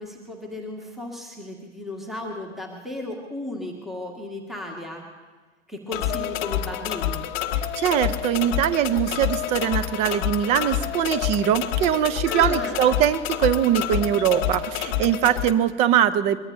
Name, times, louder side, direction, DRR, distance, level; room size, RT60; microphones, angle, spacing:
voice 1, 0.0-5.0 5.7-7.2 12.2-12.9, left 2 dB, ahead, 1 dB, 1.6 m, -35 dB
sound 1, 5.9-15.5, left 11 dB, 30° left, 0.9 m, -28 dB
voice 2, 7.8-16.4, right 10 dB, 20° right, 13 dB, 0.5 m, -22 dB
22.5 x 22.0 x 2.7 m, 1.4 s
figure-of-eight pair, 105°, 36 cm